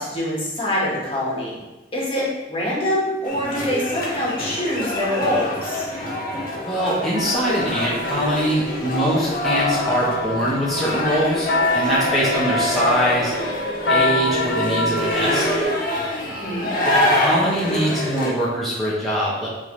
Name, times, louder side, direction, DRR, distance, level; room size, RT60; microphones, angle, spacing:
voice 1, 0.0-1.6 1.9-5.9 16.3-16.7, left 1 dB, 30° left, -5 dB, 1.8 m, -25 dB
sound 1, 3.2-18.3, left 1 dB, 50° left, 1.7 m, -25 dB
voice 2, 6.6-11.5 11.7-13.3 13.9-15.4 17.1-19.5, equal, ahead, -9 dB, 1.2 m, -23 dB
sound 2, 7.1-15.6, left 1 dB, 85° left, 1.0 m, -26 dB
9.1 x 3.9 x 3.2 m, 1.1 s
head